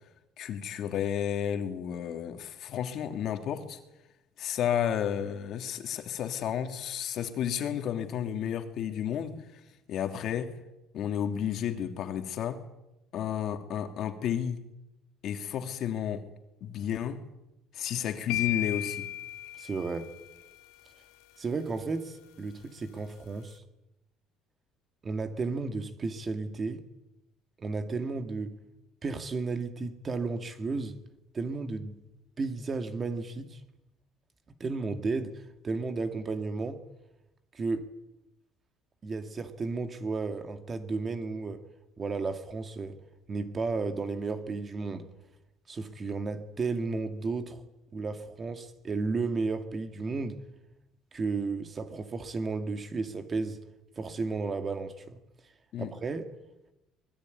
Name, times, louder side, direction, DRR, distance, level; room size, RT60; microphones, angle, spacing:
voice 1, 0.4-3.8 4.4-9.3 9.9-10.5 10.9-12.6 13.1-14.6 15.2-16.3 16.6-17.2 17.7-19.1 55.7-55.9, left 9 dB, 50° left, 2.8 m, -32 dB
sound 1, 18.3-20.4, left 14 dB, 85° left, 2.5 m, -35 dB
voice 2, 19.6-20.1 21.4-23.6 25.0-26.8 27.6-28.6 29.0-31.0 31.3-32.0 32.4-33.6 34.6-36.8 37.5-37.9 39.0-41.6 42.0-43.0 43.3-45.1 45.7-47.6 47.9-50.4 51.1-53.6 54.0-55.2 55.8-56.3, right 4 dB, 25° right, 2.1 m, -33 dB
24.5 x 21.0 x 9.4 m
cardioid pair, 150°, 0 cm